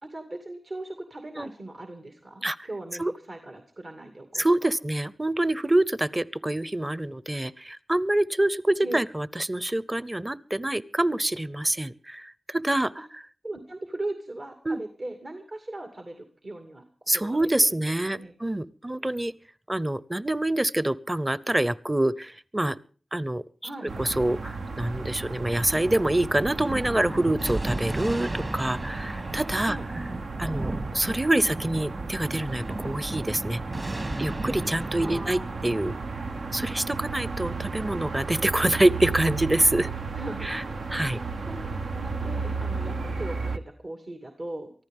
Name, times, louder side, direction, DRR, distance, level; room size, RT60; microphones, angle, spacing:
voice 1, 0.0-4.7 8.8-9.0 13.4-16.8 17.1-17.4 17.7-17.8 18.1-18.3 23.6-23.9 29.6-29.9 34.9-35.8 40.2-40.5 41.5-41.7 41.9-44.7, right 2 dB, 60° right, 5 dB, 2.3 m, -38 dB
voice 2, 4.4-12.9 14.7-14.8 17.1-19.3 19.7-22.8 23.1-23.4 24.0-29.8 30.4-33.6 34.2-35.9 36.5-39.9 40.4-40.6 40.9-41.2, right 1 dB, 20° right, 19 dB, 0.7 m, -26 dB
sound 1, 23.9-43.6, right 4 dB, 85° right, 0.9 m, -34 dB
Thunder, 26.4-37.3, right 1 dB, 45° right, 2.6 m, -36 dB
24.0 x 14.5 x 3.6 m, 0.40 s
cardioid pair, 45°, 0 cm